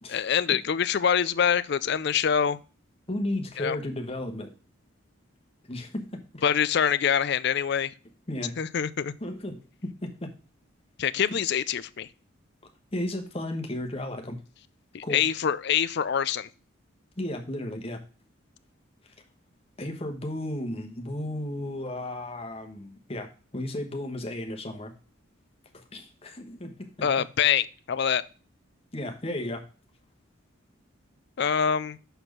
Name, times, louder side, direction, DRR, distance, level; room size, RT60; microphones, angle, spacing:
voice 1, 0.1-2.6 3.6-3.8 6.4-7.9 8.6-9.1 11.0-12.1 14.9-16.5 27.0-28.2 31.4-32.0, left 8 dB, 50° left, 16 dB, 0.4 m, -25 dB
voice 2, 3.1-4.5 5.7-6.4 8.3-8.6 9.2-9.6 10.0-10.3 12.9-14.4 15.0-15.2 17.2-18.0 19.8-24.9 25.7-27.1 28.9-29.6, left 1 dB, 30° left, 5 dB, 1.1 m, -34 dB
6.7 x 4.3 x 5.9 m, 0.36 s
head